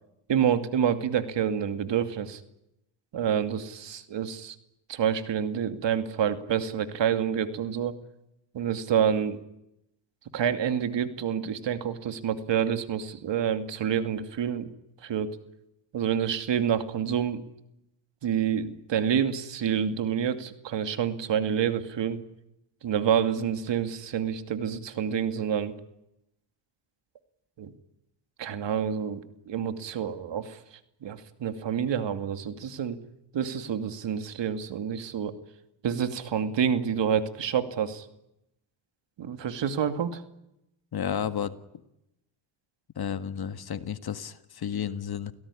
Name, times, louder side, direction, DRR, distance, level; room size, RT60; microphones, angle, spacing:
voice 1, 0.3-2.4 3.1-4.6 4.9-7.9 8.5-9.4 10.3-14.7 15.0-15.3 15.9-17.4 18.2-22.2 22.8-25.7 27.6-27.7 28.4-29.2 29.5-30.6 31.0-33.0 33.3-35.3 35.8-38.1 39.2-40.2, right 8 dB, 60° right, 9 dB, 2.6 m, -28 dB
voice 2, 40.9-41.6 43.0-45.3, left 8 dB, 50° left, 12 dB, 1.8 m, -32 dB
29.0 x 17.5 x 10.0 m, 0.86 s
cardioid pair, 80°, 49 cm